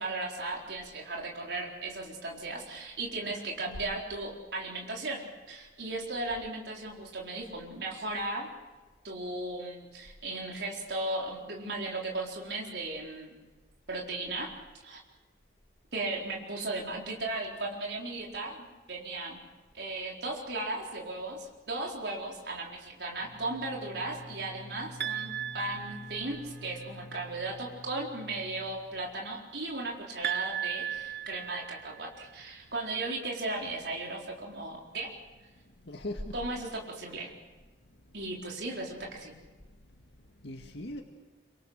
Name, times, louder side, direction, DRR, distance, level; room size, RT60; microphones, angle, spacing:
voice 1, 0.0-8.5 9.0-13.3 13.9-14.5 14.8-15.0 15.9-19.4 19.7-35.1 36.3-37.3 38.1-39.4, right 2 dB, 75° right, -1 dB, 4.3 m, -36 dB
Bowed string instrument, 23.1-29.2, left 1 dB, ahead, 7.5 m, -49 dB
sound 1, 25.0-26.7 30.2-32.3, right 9 dB, 60° right, 0.9 m, -36 dB
voice 2, 35.8-36.3 37.9-38.1 39.9-41.0, left 1 dB, 80° left, 3 dB, 2.0 m, -41 dB
26.5 x 24.5 x 6.6 m, 1.3 s
head